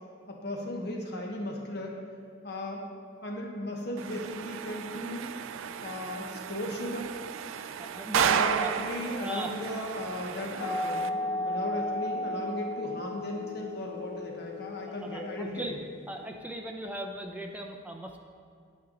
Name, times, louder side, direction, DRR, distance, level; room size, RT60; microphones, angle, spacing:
voice 1, 0.3-2.0 2.4-2.9 3.2-5.3 5.8-7.2 8.2-15.8, left 1 dB, 50° left, 0 dB, 1.1 m, -36 dB
sound 1, 4.0-11.1, right 8 dB, 80° right, 0.4 m, -33 dB
voice 2, 7.8-8.7 9.2-9.5 15.1-15.8 16.1-18.2, right 1 dB, 10° right, 1 dB, 0.6 m, -37 dB
sound 2, 10.6-16.0, left 2 dB, 85° left, 1.8 m, -35 dB
9.3 x 8.9 x 3.9 m, 2.2 s
head